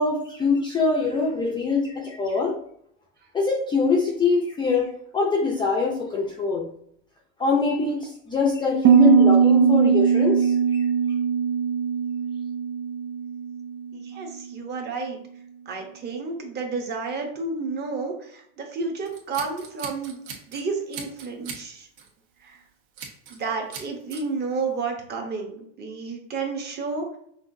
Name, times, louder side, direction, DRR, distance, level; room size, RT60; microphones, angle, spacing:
voice 1, 0.0-2.6 3.3-6.7 7.4-10.8, left 4 dB, 10° left, -2 dB, 0.5 m, -23 dB
Piano, 8.8-14.4, right 7 dB, 80° right, 0.6 m, -20 dB
voice 2, 13.9-15.2 15.7-20.2 20.5-21.9 22.4-22.6 23.3-27.2, right 4 dB, 25° right, 2 dB, 0.9 m, -31 dB
Scissors, 19.1-20.6 20.9-21.6 22.0-22.2 23.0-23.4 23.7-24.2, right 6 dB, 60° right, 1.5 m, -39 dB
5.7 x 2.5 x 2.6 m, 0.68 s
supercardioid pair, 140°, 38 cm